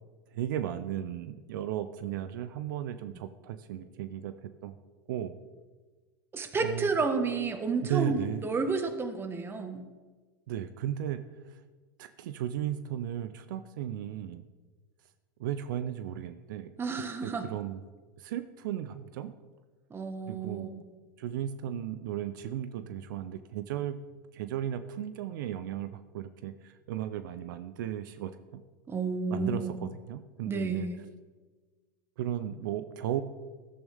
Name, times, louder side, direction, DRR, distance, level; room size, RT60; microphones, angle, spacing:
voice 1, 0.3-4.3 4.6-4.8 5.1-5.3 6.6-6.9 7.9-8.4 10.5-11.6 12.0-14.4 15.4-17.8 18.2-19.3 20.2-20.7 21.2-24.0 24.3-28.6 29.3-30.9 32.2-33.2, right 10 dB, 75° right, 11 dB, 0.7 m, -35 dB
voice 2, 6.3-9.8 16.8-17.5 19.9-20.8 28.9-29.8 30.5-31.0, right 4 dB, 20° right, 7 dB, 1.5 m, -31 dB
14.0 x 12.5 x 3.6 m, 1.4 s
supercardioid pair, 115°, 11 cm